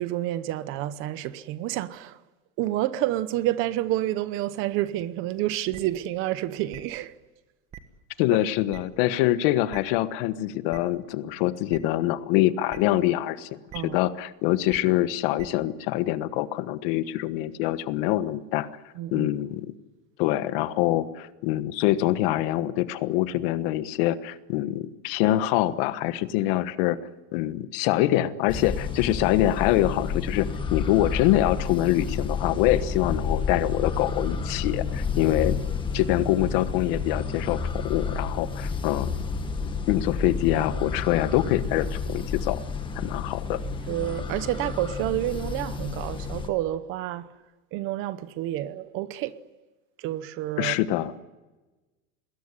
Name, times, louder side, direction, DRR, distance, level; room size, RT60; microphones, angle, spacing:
voice 1, 0.0-2.2 2.6-7.1 13.7-14.0 19.0-19.3 43.9-47.3 47.7-49.3 50.0-50.7, right 14 dB, 35° right, 0.8 m, -29 dB
sound 1, 5.7-5.8 6.7-6.8 7.7-7.8 8.7-8.8 9.7-9.8 10.7-10.8 11.7-11.8 12.7-12.8 13.7-13.8 14.7-14.8 15.4-15.5, right 10 dB, 15° right, 1.4 m, -42 dB
voice 2, 8.2-13.5 13.9-18.7 19.1-19.7 20.2-27.0 27.3-35.6 35.9-39.1 39.9-42.6 42.9-43.6 50.6-51.1, left 14 dB, 50° left, 1.3 m, -25 dB
sound 2, 28.5-46.5, left 5 dB, 15° left, 1.5 m, -30 dB
27.5 x 21.0 x 9.8 m
supercardioid pair, 170°, 36 cm